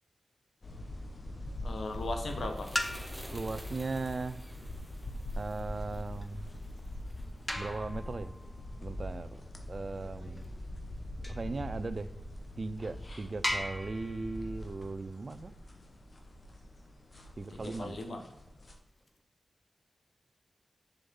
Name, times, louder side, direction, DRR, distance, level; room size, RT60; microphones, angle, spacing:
sound 1, 0.6-18.8, left 1 dB, 45° left, 1.5 m, -43 dB
voice 1, 1.6-2.7 17.5-18.2, left 2 dB, 75° left, 5 dB, 1.5 m, -38 dB
sound 2, 1.6-8.2, equal, 5° left, 1.7 m, -52 dB
sound 3, 2.8-3.5 5.1-11.6 12.2-12.3 12.8-12.9 13.4-16.1 18.2-19.2, left 1 dB, 20° left, 1.0 m, -41 dB
voice 2, 3.3-4.4 5.4-6.5 7.6-8.3 8.8-9.4 9.7-10.4 11.3-12.1 12.6-15.5 17.4-18.0, right 3 dB, 50° right, 14 dB, 0.5 m, -38 dB
7.2 x 7.0 x 5.5 m, 0.90 s
wide cardioid pair, 85°, 0 cm